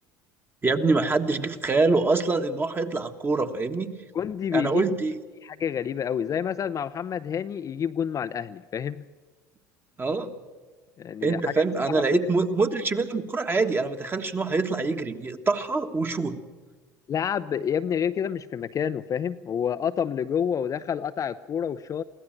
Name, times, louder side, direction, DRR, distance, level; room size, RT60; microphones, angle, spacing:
voice 1, 0.6-3.9 4.5-5.1 10.0-10.3 11.2-16.4, right 3 dB, 20° right, 7 dB, 1.6 m, -25 dB
voice 2, 4.1-4.9 5.4-9.1 11.0-11.4 11.9-12.0 17.1-22.0, left 8 dB, 35° left, 10 dB, 0.6 m, -28 dB
23.5 x 15.5 x 7.7 m, 1.4 s
hypercardioid pair, 75°, 10 cm